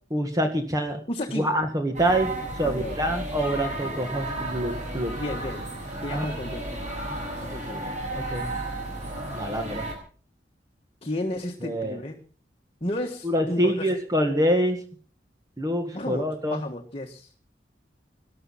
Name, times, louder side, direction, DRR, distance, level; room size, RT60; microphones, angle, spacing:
voice 1, 0.1-1.0 1.3-5.1 6.1-6.3 8.2-8.5 9.3-9.8 11.6-12.0 13.2-14.8 15.6-16.6, equal, 20° right, 5 dB, 1.7 m, -26 dB
voice 2, 1.1-1.5 2.6-3.0 5.1-5.6 6.0-6.8 7.4-7.9 11.0-12.2 12.8-14.0 15.9-17.3, left 1 dB, 35° left, 3 dB, 1.5 m, -33 dB
sound 1, 1.9-9.9, right 1 dB, 45° right, 6.6 m, -33 dB
19.5 x 12.0 x 5.7 m, 0.43 s
head